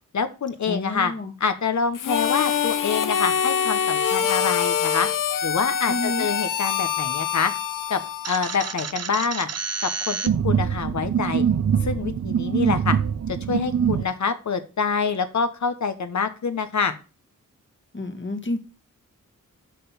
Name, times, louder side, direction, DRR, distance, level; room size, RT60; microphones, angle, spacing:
voice 1, 0.1-1.1 1.4-5.1 5.4-7.5 7.9-9.5 9.8-10.2 10.4-11.4 11.8-13.0 13.3-16.9, left 5 dB, 65° left, 1.3 m, -26 dB
voice 2, 0.7-1.3 5.9-6.3 17.9-18.6, left 2 dB, 35° left, 1.8 m, -29 dB
Harmonica, 1.9-8.9, left 8 dB, 85° left, 0.8 m, -25 dB
sound 1, 8.2-14.0, right 7 dB, 50° right, 0.8 m, -24 dB
6.7 x 5.7 x 7.2 m
cardioid pair, 75°, 31 cm